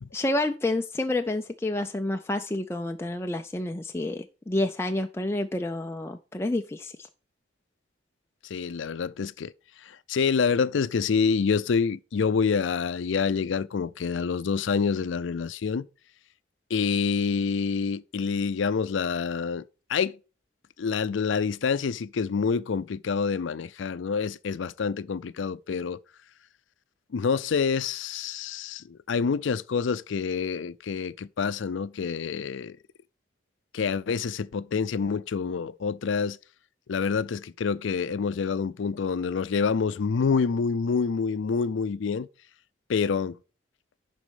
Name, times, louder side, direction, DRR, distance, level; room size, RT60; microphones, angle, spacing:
voice 1, 0.1-7.1, left 1 dB, 15° left, 0.4 m, -29 dB
voice 2, 8.5-9.5 10.1-15.9 16.7-19.6 19.9-20.2 20.8-26.0 27.1-32.8 33.7-36.4 36.9-42.3 42.9-43.4, left 5 dB, 80° left, 0.4 m, -27 dB
11.5 x 4.2 x 5.0 m
head